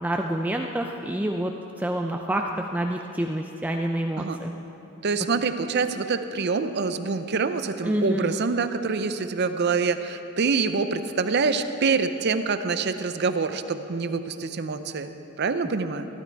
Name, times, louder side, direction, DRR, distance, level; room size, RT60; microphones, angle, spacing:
voice 1, 0.0-1.5 1.8-4.5 7.8-8.4, right 1 dB, 10° right, 2 dB, 0.4 m, -27 dB
voice 2, 5.0-15.1 15.4-16.1, right 4 dB, 55° right, 10 dB, 0.6 m, -26 dB
15.5 x 11.5 x 4.6 m, 2.9 s
head